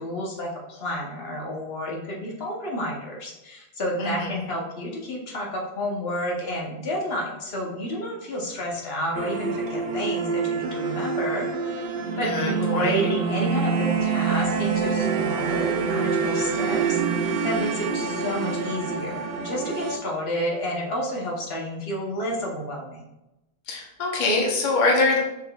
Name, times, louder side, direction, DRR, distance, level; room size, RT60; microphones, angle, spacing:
voice 1, 0.0-11.5 12.2-23.0, equal, 70° left, -1 dB, 1.1 m, -30 dB
voice 2, 4.0-4.4 12.2-13.1 23.7-25.2, left 2 dB, 50° left, -1 dB, 0.9 m, -24 dB
sound 1, 9.1-20.0, right 5 dB, 65° right, 0.7 m, -26 dB
6.3 x 3.7 x 2.3 m, 0.94 s
omnidirectional pair, 1.1 m